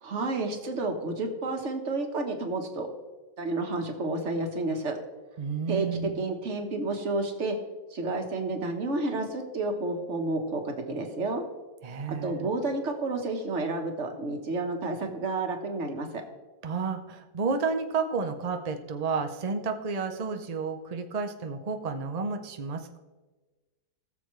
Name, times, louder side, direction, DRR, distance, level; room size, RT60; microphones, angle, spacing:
voice 1, 0.0-2.9 3.4-5.0 5.7-5.9 6.2-7.6 7.9-11.4 12.2-16.1, right 2 dB, 45° right, 4 dB, 1.5 m, -30 dB
voice 2, 5.4-6.2 11.8-12.5 16.6-23.0, right 5 dB, 80° right, 6 dB, 0.3 m, -31 dB
18.5 x 7.0 x 3.2 m, 1.2 s
omnidirectional pair, 1.9 m